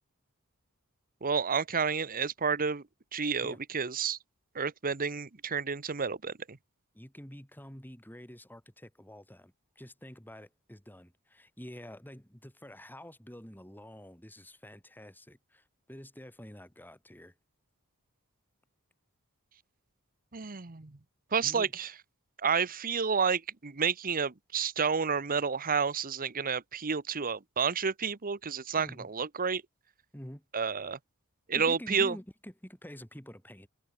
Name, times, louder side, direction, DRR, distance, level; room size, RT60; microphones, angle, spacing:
voice 1, 1.2-2.8 3.1-4.2 4.5-6.6 20.3-20.9 21.3-21.9 22.4-29.6 30.5-31.0 31.5-32.1, right 6 dB, 40° right, 1.1 m, -30 dB
voice 2, 6.9-17.3 21.4-21.7 28.8-29.1 30.1-30.4 31.5-33.7, equal, 10° left, 6.6 m, -48 dB
head